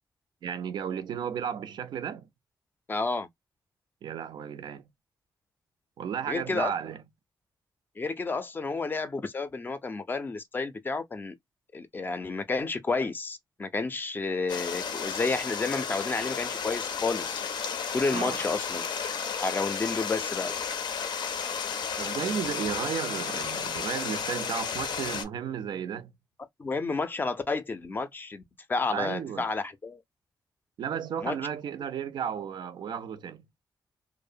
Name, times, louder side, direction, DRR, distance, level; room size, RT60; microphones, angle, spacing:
voice 1, 0.4-2.3 4.0-4.9 6.0-7.0 18.1-18.5 22.0-26.1 28.9-29.5 30.8-33.4, right 8 dB, 80° right, 0.4 m, -34 dB
voice 2, 2.9-3.3 6.3-6.7 8.0-11.3 11.7-17.4 17.9-18.9 19.4-20.5 26.6-28.4 28.7-30.0 31.2-31.4, left 3 dB, 25° left, 0.4 m, -31 dB
Stream, 14.5-25.2, left 6 dB, 85° left, 0.5 m, -33 dB
2.7 x 2.0 x 2.3 m
wide cardioid pair, 140°, 8 cm